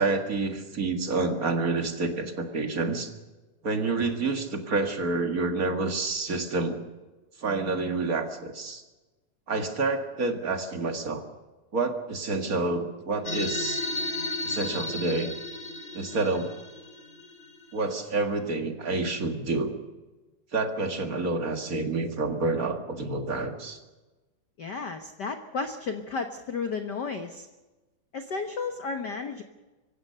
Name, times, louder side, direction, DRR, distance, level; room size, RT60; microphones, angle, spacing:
voice 1, 0.0-3.1 3.6-6.8 7.4-8.8 9.5-11.2 11.7-13.8 14.4-15.3 15.9-16.5 17.7-19.7 20.5-23.8, right 3 dB, 35° right, 5 dB, 1.9 m, -28 dB
sound 1, 13.2-18.1, left 1 dB, 15° left, 2.5 m, -34 dB
voice 2, 24.6-27.5 28.1-29.4, left 4 dB, 55° left, 6 dB, 1.1 m, -33 dB
25.0 x 16.0 x 6.7 m, 1.1 s
omnidirectional pair, 3.4 m